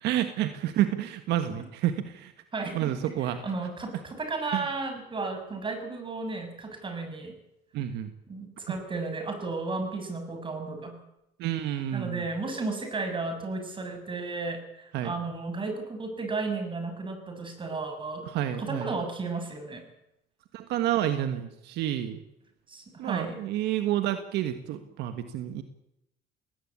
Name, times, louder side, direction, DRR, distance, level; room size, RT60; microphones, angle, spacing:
voice 1, 0.0-2.3 2.7-3.4 4.5-4.7 7.7-8.1 11.4-12.2 14.9-15.1 18.2-19.0 20.5-22.2 23.0-25.6, right 12 dB, 85° right, 9 dB, 1.6 m, -29 dB
voice 2, 2.5-2.9 3.3-7.3 8.3-11.0 11.9-18.3 18.6-19.8 22.7-23.4, right 3 dB, 30° right, 5 dB, 6.9 m, -34 dB
20.0 x 18.5 x 8.7 m, 0.82 s
cardioid pair, 110°, 17 cm